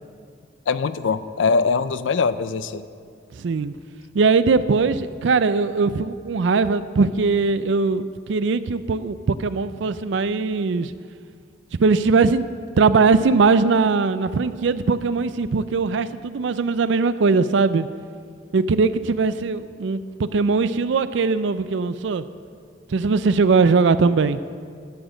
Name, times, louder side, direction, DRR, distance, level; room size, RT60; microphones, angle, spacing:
voice 1, 0.7-2.9, left 5 dB, 80° left, 14 dB, 0.5 m, -22 dB
voice 2, 3.3-3.8 4.1-10.9 11.8-12.5 12.8-17.9 18.5-22.2 22.9-24.4, right 4 dB, 70° right, 14 dB, 0.4 m, -20 dB
11.5 x 7.0 x 6.3 m, 2.2 s
head